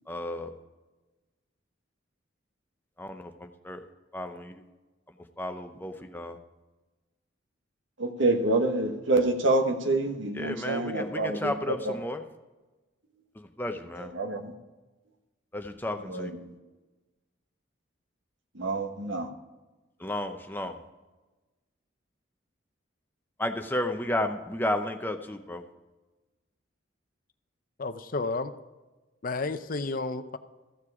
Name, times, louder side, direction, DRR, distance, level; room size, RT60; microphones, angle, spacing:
voice 1, 0.1-0.5 3.0-3.3 3.6-3.8 4.1-4.5 5.4-6.4 10.4-12.2 13.6-14.1 15.5-16.3 20.0-20.8 23.4-25.6, left 1 dB, 10° left, 6 dB, 0.7 m, -32 dB
voice 2, 8.0-12.0 14.0-14.5 16.0-16.5 18.5-19.3, right 2 dB, 75° right, 4 dB, 1.4 m, -27 dB
voice 3, 27.8-28.5 29.2-30.4, left 3 dB, 45° left, 10 dB, 0.6 m, -31 dB
14.5 x 7.3 x 4.8 m, 1.2 s
head